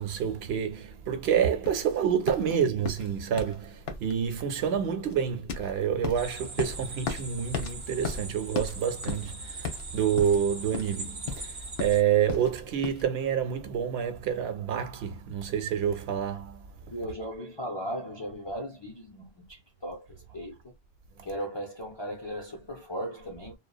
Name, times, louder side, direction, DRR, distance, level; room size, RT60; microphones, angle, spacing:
voice 1, 0.0-16.6, right 8 dB, 70° right, 0.8 m, -28 dB
sound 1, 1.6-13.0, left 5 dB, 70° left, 0.9 m, -37 dB
sound 2, 6.2-12.0, right 3 dB, 35° right, 0.5 m, -41 dB
voice 2, 16.9-20.7 21.2-23.6, equal, 35° left, 0.5 m, -37 dB
2.6 x 2.1 x 2.3 m
omnidirectional pair, 1.1 m